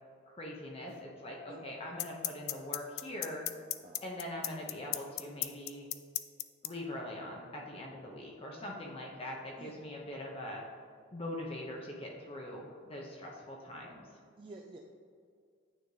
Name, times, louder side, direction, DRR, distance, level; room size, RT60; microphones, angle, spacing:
voice 1, 0.3-3.5 4.0-5.9 6.6-10.6 11.1-14.1, left 1 dB, 30° left, -2 dB, 0.7 m, -42 dB
sound 1, 0.9-1.0 2.0-6.7, left 16 dB, 80° left, 0.3 m, -34 dB
voice 2, 14.4-14.8, right 2 dB, 25° right, -1 dB, 0.3 m, -50 dB
9.1 x 3.5 x 3.2 m, 2.2 s
head